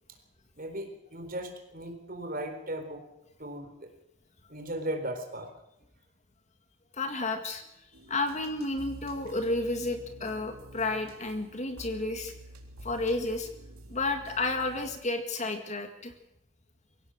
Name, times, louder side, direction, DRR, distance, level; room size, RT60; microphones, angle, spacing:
voice 1, 0.6-3.0 3.4-3.9 4.5-5.5, right 1 dB, 40° right, 5 dB, 4.1 m, -37 dB
voice 2, 6.9-12.3 12.8-13.5 13.9-16.1, left 2 dB, 30° left, 6 dB, 2.0 m, -32 dB
sound 1, 7.9-15.0, right 1 dB, 85° right, 3.7 m, -49 dB
23.5 x 17.0 x 6.5 m, 0.84 s
head